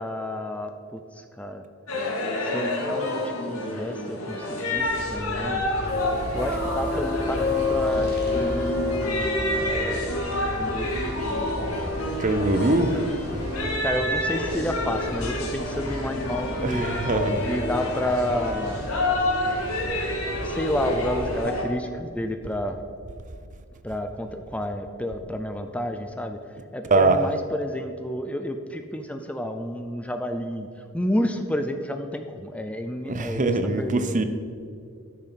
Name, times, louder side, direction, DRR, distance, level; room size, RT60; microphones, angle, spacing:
voice 1, 0.0-1.6 2.4-5.7 6.3-10.0 10.5-10.9 12.7-13.1 13.8-16.9 17.5-18.8 20.4-22.8 23.8-30.7 30.9-34.2, equal, 5° left, 6 dB, 0.4 m, -30 dB
sound 1, 1.9-21.6, left 1 dB, 85° left, 1.9 m, -29 dB
sound 2, 4.7-21.4, left 2 dB, 50° left, 1.7 m, -31 dB
voice 2, 12.2-13.0 16.6-17.4 26.9-27.2 33.1-34.2, right 2 dB, 35° right, 9 dB, 0.6 m, -22 dB
12.0 x 6.6 x 5.7 m, 2.4 s
head